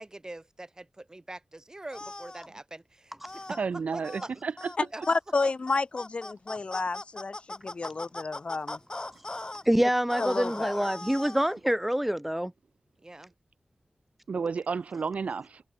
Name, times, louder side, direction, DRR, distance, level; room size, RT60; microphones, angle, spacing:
voice 1, 0.0-3.6 3.9-4.3 4.9-5.0 13.0-13.3, right 2 dB, 30° right, 7.9 m, -43 dB
sound 1, 1.9-2.5 3.2-3.6 4.0-4.3 4.6-4.8 5.0-9.6 10.1-11.6, left 2 dB, 35° left, 7.3 m, -40 dB
voice 2, 3.6-4.7 14.3-15.6, right 5 dB, 80° right, 2.8 m, -31 dB
voice 3, 4.8-8.8 10.2-10.9, left 3 dB, 55° left, 7.1 m, -31 dB
voice 4, 9.7-12.5, equal, 5° right, 1.1 m, -26 dB
cardioid pair, 45°, 2 cm